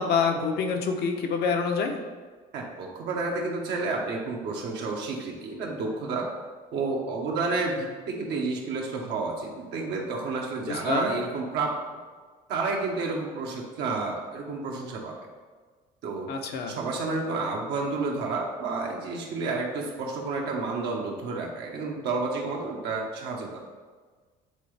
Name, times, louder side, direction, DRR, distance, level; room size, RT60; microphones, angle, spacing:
voice 1, 0.0-2.0 10.7-11.1 16.3-16.8, left 5 dB, 65° left, 4 dB, 0.9 m, -26 dB
voice 2, 2.5-6.3 6.7-11.7 12.5-15.1 16.0-16.3 16.7-23.6, right 3 dB, 70° right, -1 dB, 1.4 m, -30 dB
8.3 x 3.8 x 3.4 m, 1.4 s
supercardioid pair, 80°, 18 cm